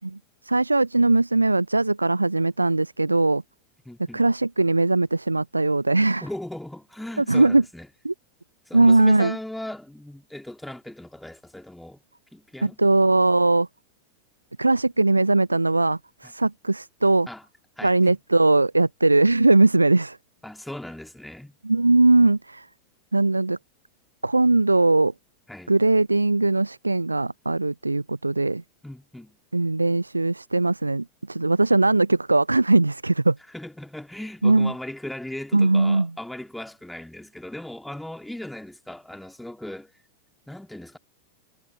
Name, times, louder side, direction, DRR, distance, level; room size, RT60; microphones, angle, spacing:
voice 1, 0.4-3.4 4.1-6.2 7.2-7.6 8.0-8.1 8.7-9.3 12.6-13.7 14.6-17.3 17.8-20.2 21.6-22.7 23.1-23.6 24.2-25.1 25.7-28.6 29.5-33.4 34.4-34.7 35.5-36.1, right 2 dB, 85° right, 0.7 m, -20 dB
voice 2, 3.9-4.2 6.2-7.9 8.7-12.0 12.3-12.8 16.2-16.3 17.3-17.4 17.8-18.2 20.4-21.5 25.5-25.7 28.8-29.4 33.5-39.9 40.5-41.0, left 1 dB, 5° left, 3.6 m, -38 dB
figure-of-eight pair, 90°, 0 cm